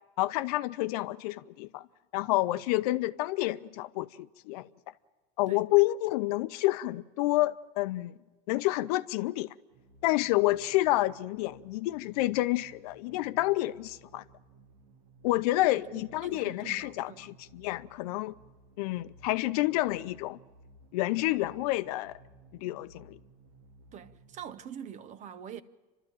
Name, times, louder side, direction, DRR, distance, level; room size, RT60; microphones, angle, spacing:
voice 1, 0.2-1.9 2.1-4.1 4.5-4.7 5.4-8.1 8.5-9.5 10.0-14.2 15.2-18.3 18.8-20.4 20.9-22.2 22.5-23.2, left 18 dB, 85° left, 0.7 m, -29 dB
sound 1, 9.7-24.4, right 2 dB, 85° right, 2.1 m, -58 dB
voice 2, 15.5-15.9 16.2-17.3 23.9-25.6, right 9 dB, 40° right, 0.9 m, -45 dB
28.5 x 13.0 x 8.9 m
cardioid pair, 140°, 19 cm